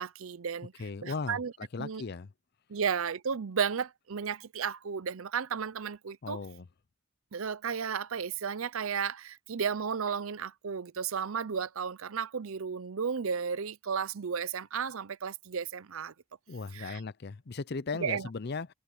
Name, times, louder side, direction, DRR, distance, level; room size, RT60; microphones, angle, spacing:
voice 1, 0.0-0.7 1.0-1.5 1.8-2.0 2.7-6.4 7.3-16.1 16.7-17.0 18.0-18.3, right 6 dB, 70° right, 0.6 m, -33 dB
voice 2, 0.8-2.3 6.2-6.7 16.5-18.7, left 4 dB, 50° left, 0.6 m, -37 dB
head